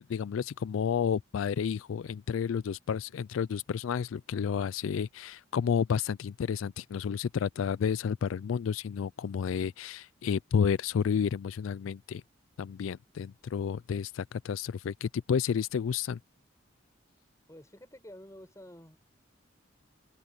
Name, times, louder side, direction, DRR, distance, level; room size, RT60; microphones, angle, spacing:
voice 1, 0.0-12.2 12.6-16.2, left 7 dB, 85° left, 0.4 m, -31 dB
voice 2, 17.5-19.0, equal, 15° left, 7.0 m, -49 dB
head